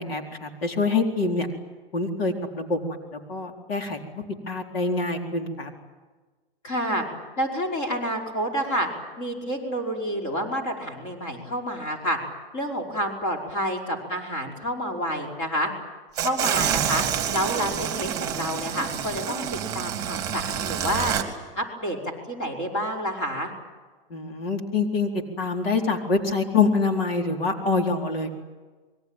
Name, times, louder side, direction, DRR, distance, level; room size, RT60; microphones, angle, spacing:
voice 1, 0.0-1.5 1.9-5.7 24.1-28.3, left 4 dB, 85° left, 2 dB, 4.3 m, -26 dB
voice 2, 6.6-7.1 7.4-8.9 9.2-12.2 12.5-15.7 16.2-17.0 17.3-21.1 21.6-23.5, equal, 30° left, 1 dB, 5.2 m, -29 dB
sound 1, 16.2-21.2, right 9 dB, 10° right, 2.7 m, -28 dB
26.5 x 22.5 x 9.1 m, 1.3 s
hypercardioid pair, 165°, 29 cm